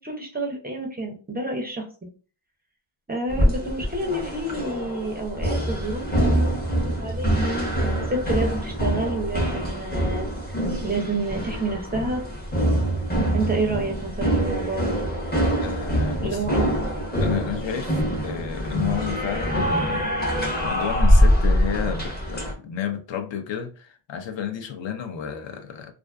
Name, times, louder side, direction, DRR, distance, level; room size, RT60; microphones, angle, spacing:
voice 1, 0.0-1.8 3.1-6.5 6.8-10.6 10.8-12.2 13.3-15.0 16.2-16.6, right 2 dB, 20° right, 0.4 m, -29 dB
sound 1, 3.3-22.5, equal, 20° left, 0.6 m, -24 dB
voice 2, 15.6-16.8 17.2-20.1 20.6-25.9, left 8 dB, 65° left, 0.5 m, -31 dB
2.4 x 2.3 x 2.2 m
wide cardioid pair, 120°, 50 cm